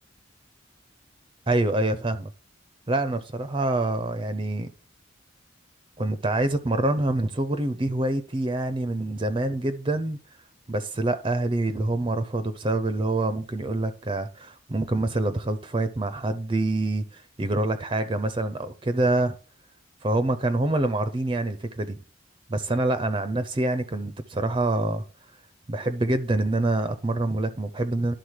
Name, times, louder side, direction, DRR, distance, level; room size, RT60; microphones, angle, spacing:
voice 1, 1.5-2.3 2.9-4.7 6.0-10.2 10.7-19.3 20.0-22.0 22.5-25.0 25.7-28.1, right 2 dB, 25° right, 0.6 m, -26 dB
11.0 x 3.9 x 6.5 m
head